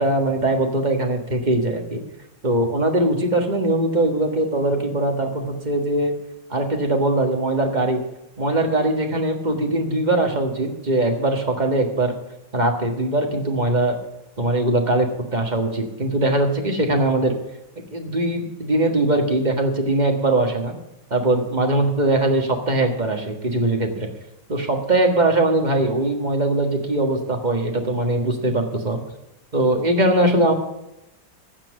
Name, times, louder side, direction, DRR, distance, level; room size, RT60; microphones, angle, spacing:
voice 1, 0.0-2.0 2.4-6.1 6.5-8.0 8.4-12.1 12.5-14.0 14.4-17.3 17.9-20.7 21.1-24.1 24.5-29.0 29.5-30.5, right 2 dB, 25° right, 3 dB, 1.5 m, -21 dB
15.0 x 6.0 x 8.1 m, 0.89 s
omnidirectional pair, 2.2 m